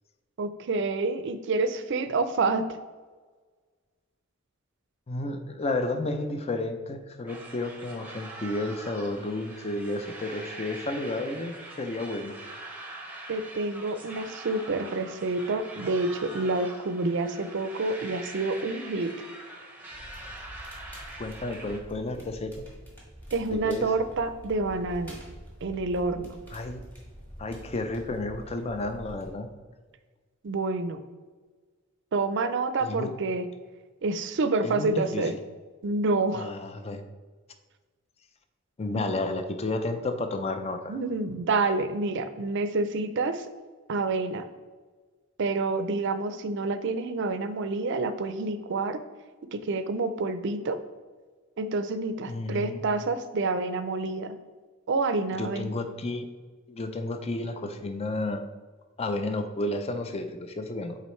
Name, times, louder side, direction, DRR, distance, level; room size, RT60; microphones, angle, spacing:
voice 1, 0.4-2.7 13.3-19.1 23.3-25.2 25.6-26.4 30.4-31.0 32.1-33.5 34.0-35.3 35.8-36.5 39.0-39.1 40.9-43.4 43.9-44.4 45.4-49.0 49.5-50.8 51.6-54.3 54.9-55.7, right 3 dB, 60° right, 10 dB, 0.5 m, -28 dB
voice 2, 5.1-12.3 21.2-22.6 23.5-23.9 26.5-26.8 27.4-29.5 32.8-33.1 34.6-35.3 36.3-37.0 38.8-41.0 52.3-52.9 55.3-56.2 56.7-58.4 59.0-61.0, left 2 dB, 30° left, 7 dB, 0.5 m, -32 dB
sound 1, 7.3-21.8, right 2 dB, 10° right, 0.8 m, -43 dB
Crackle, 19.9-29.3, equal, 10° left, 1.4 m, -46 dB
8.4 x 3.8 x 3.1 m, 1.4 s
head